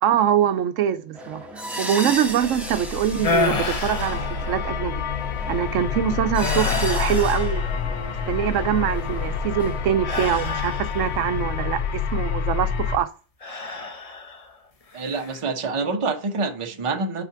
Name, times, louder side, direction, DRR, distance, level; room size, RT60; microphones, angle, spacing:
voice 1, 0.0-4.9 5.5-7.6 8.0-13.1, right 10 dB, 90° right, 1.0 m, -24 dB
sound 1, 1.1-12.1, equal, ahead, 1.0 m, -36 dB
sound 2, 2.3-13.0, left 6 dB, 65° left, 0.9 m, -28 dB
sound 3, 3.2-4.9 5.5-5.8 6.3-8.2 10.0-11.4 13.4-14.5 14.9-15.4, left 4 dB, 35° left, 0.8 m, -29 dB
voice 2, 14.9-17.2, right 3 dB, 30° right, 0.7 m, -26 dB
5.7 x 4.4 x 4.7 m
omnidirectional pair, 1.3 m